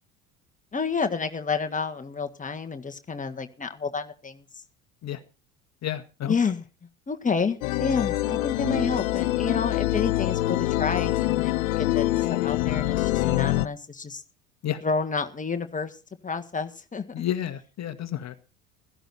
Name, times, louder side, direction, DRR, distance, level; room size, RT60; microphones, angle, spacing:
voice 1, 0.7-4.4 6.3-6.6 7.1-12.1 12.4-14.2 14.8-16.0 16.2-17.0, left 5 dB, 15° left, 6 dB, 1.7 m, -29 dB
voice 2, 5.8-6.3 14.6-14.8 17.1-18.3, left 11 dB, 35° left, 10 dB, 1.4 m, -30 dB
sound 1, 7.6-13.7, left 16 dB, 65° left, 0.7 m, -25 dB
16.0 x 13.5 x 4.2 m, 0.33 s
figure-of-eight pair, 65°, 44 cm